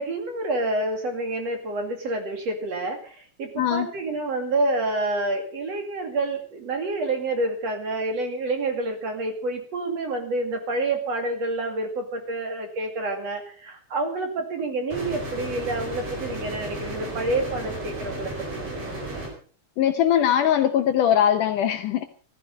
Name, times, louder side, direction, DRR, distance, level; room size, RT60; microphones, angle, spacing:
voice 1, 0.0-18.6, right 2 dB, 45° right, 4 dB, 3.3 m, -28 dB
voice 2, 3.6-3.9 19.8-22.0, left 10 dB, 70° left, 8 dB, 2.1 m, -21 dB
sound 1, 14.9-19.3, right 2 dB, 75° right, 7.1 m, -33 dB
15.5 x 14.5 x 5.3 m, 0.42 s
omnidirectional pair, 4.4 m